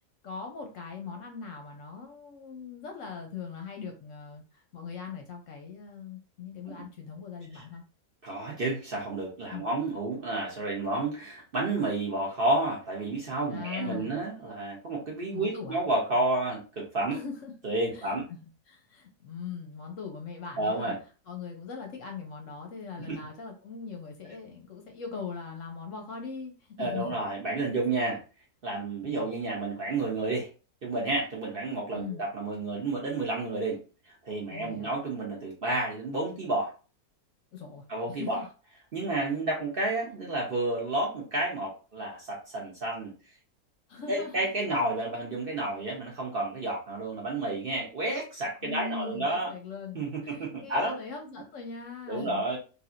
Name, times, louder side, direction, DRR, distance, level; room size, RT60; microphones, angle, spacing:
voice 1, 0.2-7.8 9.5-9.6 13.5-14.2 15.3-15.8 17.1-17.5 17.9-21.0 21.3-27.2 29.0-29.3 31.9-32.2 34.5-35.0 37.5-38.5 43.9-44.5 48.6-52.4, left 5 dB, 65° left, 3 dB, 0.9 m, -40 dB
voice 2, 8.2-17.2 17.6-18.2 20.6-21.0 23.1-23.2 26.8-28.2 28.6-30.5 30.8-33.8 34.1-36.7 37.9-38.4 38.9-43.1 44.1-49.5 49.9-51.0 52.1-52.6, right 2 dB, 50° right, -2 dB, 0.7 m, -30 dB
3.3 x 2.6 x 2.4 m, 0.34 s
omnidirectional pair, 1.6 m